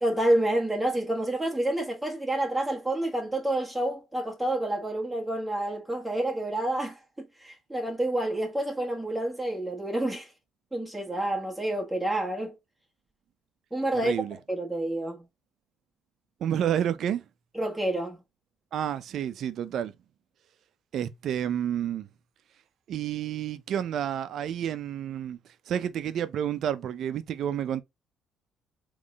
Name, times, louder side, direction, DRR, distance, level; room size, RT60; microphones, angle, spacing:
voice 1, 0.0-10.3 10.7-12.5 13.7-14.1 14.5-15.2 17.5-18.2, right 1 dB, 5° right, 1.3 m, -28 dB
voice 2, 13.9-14.4 16.4-17.2 18.7-19.9 20.9-22.1 22.9-25.4 25.7-27.8, right 10 dB, 65° right, 0.5 m, -30 dB
3.7 x 3.2 x 3.6 m
supercardioid pair, 60°, 0 cm